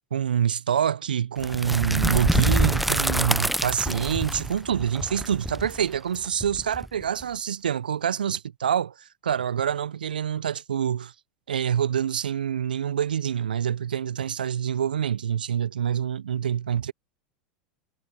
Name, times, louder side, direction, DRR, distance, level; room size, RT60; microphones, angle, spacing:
voice 1, 0.1-8.9 9.2-11.1 11.5-16.9, right 9 dB, 75° right, 0.9 m, -26 dB
sound 1, 1.4-7.2, right 1 dB, ahead, 0.9 m, -26 dB
figure-of-eight pair, 85°, 5 cm